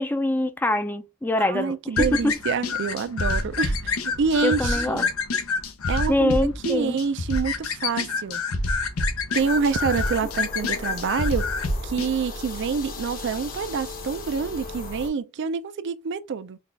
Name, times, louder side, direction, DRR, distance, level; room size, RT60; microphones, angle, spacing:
voice 1, 0.0-2.4 4.4-5.1 6.1-7.0, left 1 dB, 10° left, 0.4 m, -24 dB
voice 2, 1.4-5.1 5.9-6.4 6.6-8.4 9.3-11.4 11.8-16.6, right 5 dB, 60° right, 0.4 m, -27 dB
sound 1, 2.0-12.1, left 3 dB, 90° left, 0.7 m, -27 dB
sound 2, 9.3-15.1, left 3 dB, 45° left, 0.9 m, -37 dB
4.0 x 2.3 x 3.3 m
head